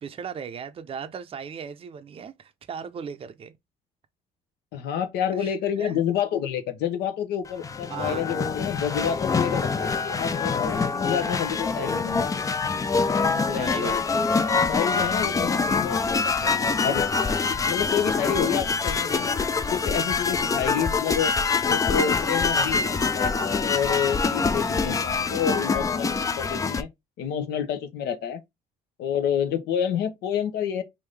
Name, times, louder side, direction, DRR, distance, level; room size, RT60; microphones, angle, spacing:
voice 1, 0.0-3.5 5.4-6.0 7.9-8.4 13.5-14.2, right 7 dB, 35° right, 0.5 m, -37 dB
voice 2, 4.7-12.2 13.1-14.2 14.7-17.0 17.5-19.3 19.7-21.3 21.6-26.9 27.2-28.4 29.0-30.8, left 8 dB, 80° left, 0.8 m, -29 dB
sound 1, 7.5-26.8, left 4 dB, 20° left, 0.3 m, -25 dB
3.5 x 2.6 x 3.3 m
cardioid pair, 110°, 17 cm